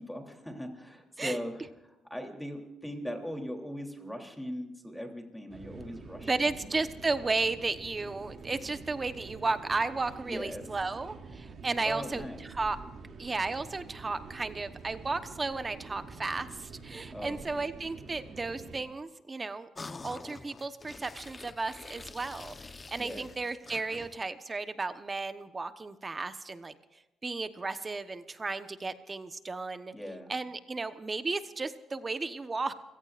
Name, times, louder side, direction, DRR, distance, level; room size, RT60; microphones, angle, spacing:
voice 1, 0.0-1.6 2.1-6.7 10.3-10.6 11.8-12.5 17.1-17.5 23.0-23.3 29.9-30.3, equal, 5° left, 3 dB, 3.2 m, -39 dB
sound 1, 5.5-18.8, right 4 dB, 55° right, 2.6 m, -47 dB
voice 2, 6.2-12.8 13.2-19.7 20.0-26.7 27.2-29.9 30.3-32.7, right 3 dB, 25° right, 10 dB, 1.0 m, -34 dB
sound 2, 19.7-24.3, left 3 dB, 30° left, 1.0 m, -46 dB
30.0 x 17.0 x 2.5 m, 1.0 s
cardioid pair, 90°, 0 cm